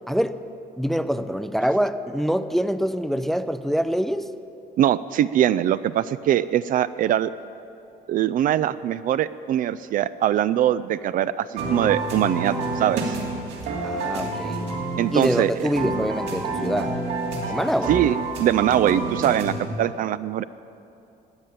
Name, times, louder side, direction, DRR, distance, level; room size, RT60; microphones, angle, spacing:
voice 1, 0.1-0.4 0.8-4.3 13.8-14.6 15.1-16.9 17.5-17.9, equal, ahead, 11 dB, 0.5 m, -25 dB
voice 2, 4.8-7.3 8.1-13.2 15.0-15.7 17.9-20.4, right 11 dB, 55° right, 15 dB, 0.4 m, -22 dB
sound 1, 11.6-19.7, right 2 dB, 85° right, 2.8 m, -28 dB
13.5 x 8.3 x 8.9 m, 2.8 s
cardioid pair, 110°, 17 cm